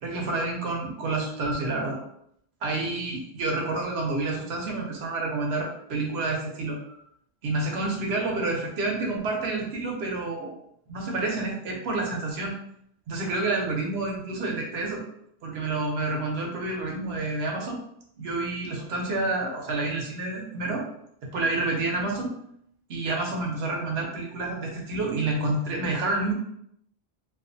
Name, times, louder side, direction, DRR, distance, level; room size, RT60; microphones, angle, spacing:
voice 1, 0.0-2.0 2.6-7.0 7.4-10.5 10.9-12.5 13.1-15.0 15.4-17.8 18.2-20.8 21.2-22.3 22.9-26.3, right 2 dB, 80° right, 0 dB, 1.0 m, -29 dB
2.5 x 2.4 x 2.5 m, 0.71 s
omnidirectional pair, 1.0 m